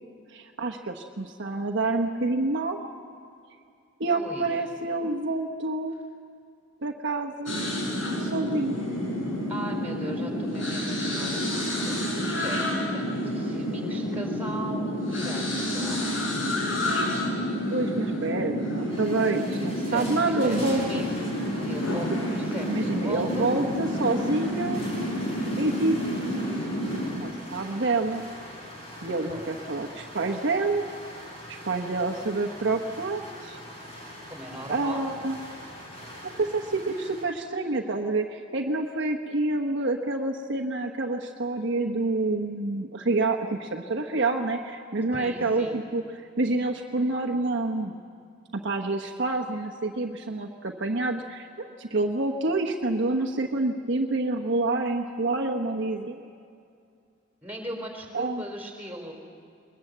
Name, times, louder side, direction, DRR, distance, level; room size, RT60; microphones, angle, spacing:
voice 1, 0.3-2.8 4.0-6.0 6.8-7.6 8.2-8.8 17.7-21.0 22.1-22.2 22.6-24.8 25.6-26.0 27.1-28.2 29.0-30.9 31.5-33.6 34.7-35.4 36.2-46.0 46.4-47.9 48.5-56.2 58.1-58.4, right 2 dB, 65° right, 1 dB, 1.1 m, -28 dB
voice 2, 4.1-4.6 9.5-16.0 19.7-21.0 21.5-23.5 29.2-29.5 34.3-35.1 45.1-45.8 57.4-59.1, right 1 dB, 10° right, 1 dB, 4.2 m, -39 dB
sound 1, 7.5-27.1, equal, 75° left, 6.0 m, -29 dB
sound 2, 18.7-37.2, equal, 30° left, 6.1 m, -43 dB
22.0 x 21.0 x 8.0 m, 2.4 s
head